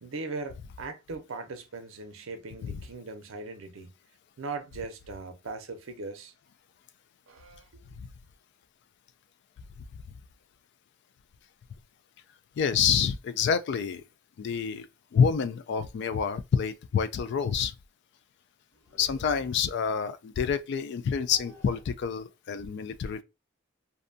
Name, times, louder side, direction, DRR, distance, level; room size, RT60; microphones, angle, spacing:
voice 1, 0.0-3.9 4.4-6.3 7.3-7.8, right 3 dB, 75° right, 0.5 m, -39 dB
voice 2, 12.6-14.0 14.4-17.7 19.0-23.2, left 6 dB, 60° left, 0.3 m, -28 dB
sound 1, 13.9-14.0 15.2-15.3 15.7-15.8 16.1-16.3 18.7-20.0 20.9-21.8, equal, 15° left, 0.7 m, -52 dB
2.6 x 2.2 x 2.5 m
head